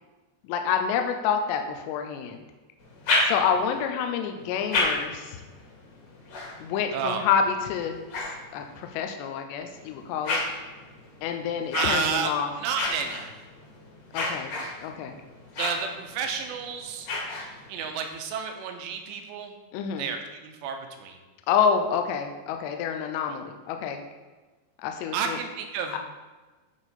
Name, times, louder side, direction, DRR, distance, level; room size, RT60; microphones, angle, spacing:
voice 1, 0.4-2.4 3.2-5.4 6.6-8.0 8.5-10.4 11.2-12.5 14.1-14.5 14.8-15.2 19.7-20.1 21.5-24.0 24.8-25.4 25.9-26.0, left 7 dB, 85° left, 5 dB, 2.8 m, -28 dB
sound 1, 2.8-3.8 4.4-9.0 9.6-17.9, left 2 dB, 50° left, 2.4 m, -33 dB
voice 2, 6.9-7.2 11.7-12.3 12.6-13.3 15.6-17.1 17.7-19.5 20.0-20.2 20.4-21.2 25.1-26.0, right 6 dB, 80° right, 4 dB, 3.0 m, -30 dB
10.5 x 5.1 x 4.1 m, 1.3 s
omnidirectional pair, 5.1 m